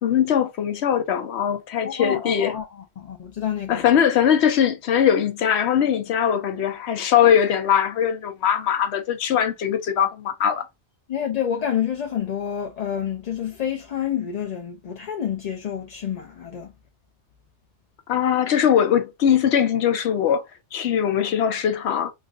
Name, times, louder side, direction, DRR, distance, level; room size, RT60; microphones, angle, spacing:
voice 1, 0.0-2.5 3.7-10.6 18.1-20.4 20.7-22.1, left 9 dB, 70° left, 0.9 m, -21 dB
voice 2, 1.8-3.8 11.1-16.7, left 9 dB, 55° left, 0.4 m, -28 dB
3.1 x 2.5 x 2.5 m
omnidirectional pair, 1.2 m